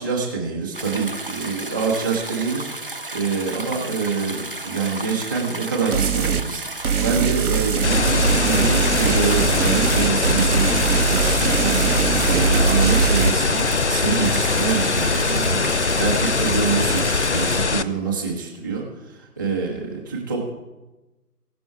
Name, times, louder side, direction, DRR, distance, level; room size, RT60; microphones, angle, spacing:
voice 1, 0.0-2.7 3.1-10.7 11.1-20.5, right 5 dB, 15° right, -3 dB, 1.0 m, -26 dB
sound 1, 0.7-17.6, right 2 dB, 35° right, 0.5 m, -33 dB
sound 2, 5.9-6.4 6.8-13.3, right 6 dB, 60° right, 0.9 m, -21 dB
sound 3, 7.8-17.8, left 4 dB, 50° left, 0.5 m, -21 dB
16.5 x 6.2 x 4.7 m, 1.1 s
figure-of-eight pair, 150°, 48 cm